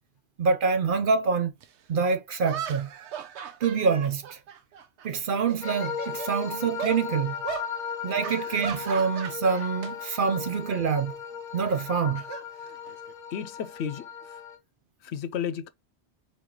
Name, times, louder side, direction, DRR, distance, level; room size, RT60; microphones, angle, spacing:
voice 1, 0.4-1.5 1.9-2.9 3.6-4.4 5.0-7.4 8.0-11.2 11.5-12.2, right 5 dB, 55° right, 0.7 m, -26 dB
sound 1, 1.6-1.7 2.4-5.1 5.4-6.3 6.8-7.0 7.4-7.7 8.2-9.9 10.2-10.5 11.7-13.1, right 8 dB, 90° right, 1.0 m, -37 dB
sound 2, 5.6-14.6, left 7 dB, 50° left, 1.1 m, -37 dB
voice 2, 13.3-14.4 15.0-15.7, left 8 dB, 75° left, 0.9 m, -33 dB
4.3 x 3.0 x 3.7 m
omnidirectional pair, 1.1 m